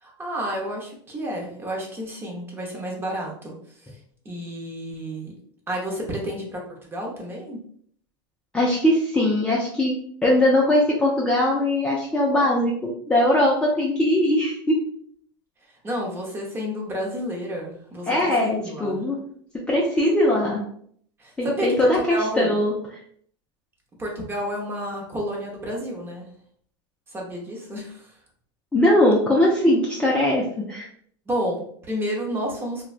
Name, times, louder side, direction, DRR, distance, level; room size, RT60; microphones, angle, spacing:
voice 1, 0.0-3.9 4.2-5.3 5.7-6.6 6.9-7.6 15.8-19.0 21.2-22.6 24.0-26.3 27.1-28.1 31.3-32.9, equal, 15° right, -1 dB, 0.8 m, -30 dB
voice 2, 8.5-14.8 18.1-19.2 19.6-20.6 21.4-22.7 28.7-30.9, left 1 dB, 10° left, -4 dB, 0.4 m, -20 dB
3.1 x 2.2 x 2.4 m, 0.62 s
supercardioid pair, 130°, 13 cm